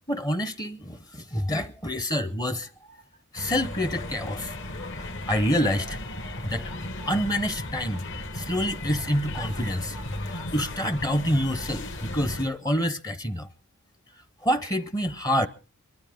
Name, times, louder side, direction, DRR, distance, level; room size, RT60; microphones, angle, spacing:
voice 1, 0.1-2.7 3.3-4.5 4.9-6.0 6.4-6.7 7.1-8.0 8.3-10.0 10.2-13.5 14.4-15.5, equal, 15° left, 0.8 m, -27 dB
sound 1, 3.4-12.4, left 1 dB, 55° left, 1.9 m, -35 dB
24.0 x 13.0 x 3.6 m
head